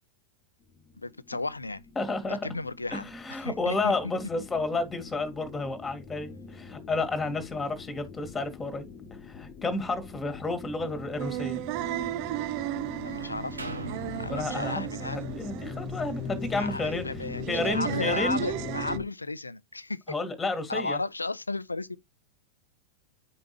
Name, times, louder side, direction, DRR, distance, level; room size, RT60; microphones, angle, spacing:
sound 1, 0.7-19.0, left 5 dB, 35° left, 1.1 m, -42 dB
voice 1, 1.0-1.8 2.4-3.1 3.4-3.9 13.0-13.7 14.1-15.2 16.6-20.0 20.7-22.0, left 3 dB, 80° left, 0.4 m, -34 dB
voice 2, 2.0-2.4 2.9-8.9 9.2-11.6 14.3-17.1 17.5-18.4 20.1-21.0, left 3 dB, 15° left, 1.8 m, -31 dB
sound 2, 11.2-19.0, right 16 dB, 45° right, 0.4 m, -35 dB
sound 3, 13.6-17.4 17.9-18.0, right 2 dB, 80° right, 1.0 m, -43 dB
9.6 x 5.2 x 3.0 m
figure-of-eight pair, 90°, 0 cm